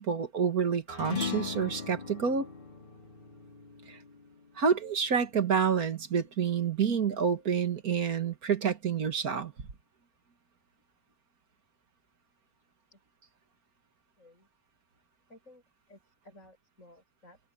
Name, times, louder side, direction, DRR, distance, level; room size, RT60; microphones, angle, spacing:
voice 1, 0.0-2.5 3.9-4.0 4.6-9.5, right 6 dB, 55° right, 2.1 m, -28 dB
sound 1, 0.9-5.6, left 6 dB, 30° left, 2.1 m, -39 dB
voice 2, 14.2-14.5 15.3-17.4, left 1 dB, 45° left, 7.7 m, -56 dB
omnidirectional pair, 1.8 m